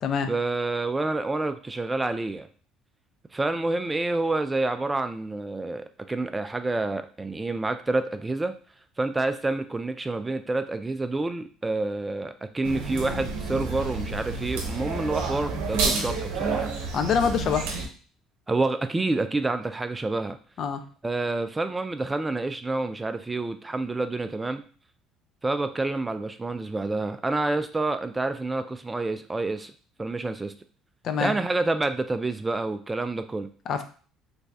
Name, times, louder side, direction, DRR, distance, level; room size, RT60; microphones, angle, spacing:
voice 1, 0.3-2.5 3.3-8.5 9.0-16.7 18.5-20.4 21.0-24.6 25.4-29.7 30.0-30.5 31.2-33.5, right 2 dB, 15° right, 9 dB, 0.3 m, -28 dB
sound 1, 12.6-17.9, right 4 dB, 85° right, 0.7 m, -30 dB
voice 2, 16.9-17.7 20.6-20.8 31.0-31.3 33.7-33.8, left 7 dB, 55° left, 8 dB, 0.5 m, -25 dB
3.2 x 2.6 x 3.4 m, 0.41 s
supercardioid pair, 90°, 0 cm